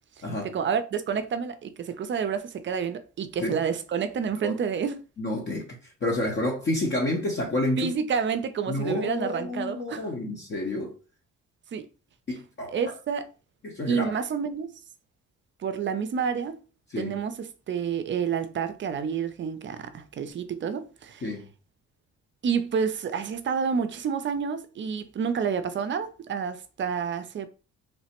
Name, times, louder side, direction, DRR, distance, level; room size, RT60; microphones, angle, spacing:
voice 1, 0.4-5.0 7.8-10.1 11.7-11.9 12.7-13.3 13.9-14.7 15.6-16.6 17.0-21.3 22.4-27.5, right 6 dB, 40° right, 0.4 m, -29 dB
voice 2, 5.2-5.7 6.0-7.9 8.7-10.9 12.3-12.8 13.6-14.2 16.9-17.2 21.2-21.5, left 1 dB, 35° left, 0.7 m, -29 dB
3.1 x 2.0 x 2.9 m
cardioid pair, 90°, 30 cm